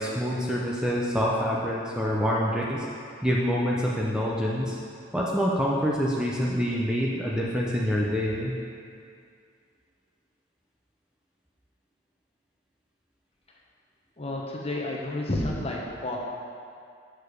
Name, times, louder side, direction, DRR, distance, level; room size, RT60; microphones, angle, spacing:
voice 1, 0.0-2.9 3.2-4.8 5.1-8.5, equal, 5° right, -5 dB, 0.5 m, -26 dB
voice 2, 14.2-16.2, left 1 dB, 30° left, -2 dB, 1.0 m, -30 dB
6.7 x 6.6 x 5.0 m, 2.4 s
head